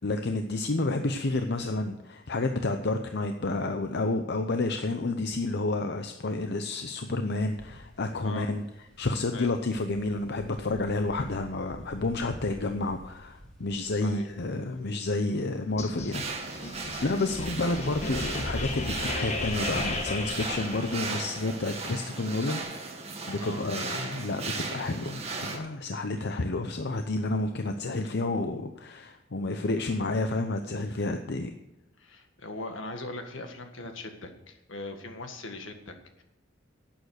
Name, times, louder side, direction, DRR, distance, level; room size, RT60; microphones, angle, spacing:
voice 1, 0.0-8.6 9.0-16.2 16.5-16.6 17.0-22.6 23.3-31.5, left 2 dB, 60° left, 7 dB, 0.8 m, -30 dB
Wind, 7.2-20.4, equal, 5° left, 4.0 m, -52 dB
sound 1, 15.8-21.4, left 2 dB, 35° left, 1.5 m, -35 dB
sound 2, 16.1-25.6, right 3 dB, 35° right, 2.0 m, -36 dB
voice 2, 32.0-36.2, left 2 dB, 75° left, 6 dB, 1.8 m, -40 dB
11.5 x 9.0 x 6.5 m, 0.94 s
head